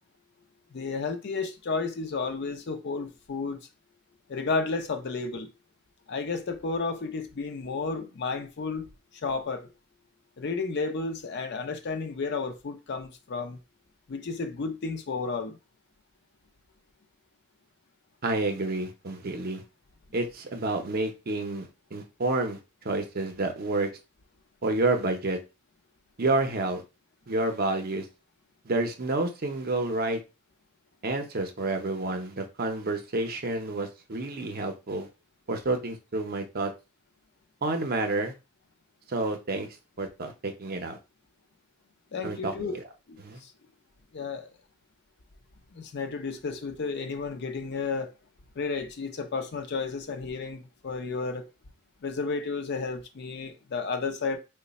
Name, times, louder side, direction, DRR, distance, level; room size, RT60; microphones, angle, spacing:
voice 1, 0.7-3.6 4.3-5.5 6.1-8.9 9.2-9.7 10.4-13.6 14.1-15.6 42.1-42.7 43.1-43.5 44.1-44.5 45.7-48.1 48.6-51.5 52.0-54.4, left 4 dB, 50° left, 0.5 m, -32 dB
voice 2, 18.2-19.6 20.1-22.6 22.8-23.9 24.6-25.4 26.2-26.8 27.3-28.1 28.6-30.2 31.0-35.1 35.5-36.7 37.6-38.3 39.1-39.7 40.0-41.0 42.2-42.8 43.2-43.4, right 2 dB, 45° right, 0.6 m, -29 dB
3.1 x 2.1 x 4.0 m
head